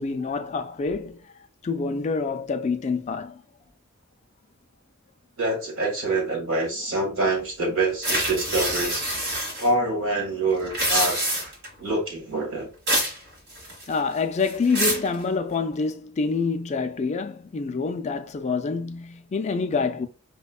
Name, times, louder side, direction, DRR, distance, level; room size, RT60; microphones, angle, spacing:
voice 1, 0.0-1.3 1.6-3.4 13.9-20.1, left 4 dB, 35° left, 0.3 m, -27 dB
voice 2, 5.4-9.0 9.6-11.2 11.8-12.7, right 2 dB, 70° right, 1.7 m, -25 dB
sound 1, 8.0-9.7 10.6-11.7 12.9-13.2 13.5-14.0 14.4-15.1, right 1 dB, 55° right, 1.5 m, -26 dB
5.0 x 2.2 x 2.3 m
head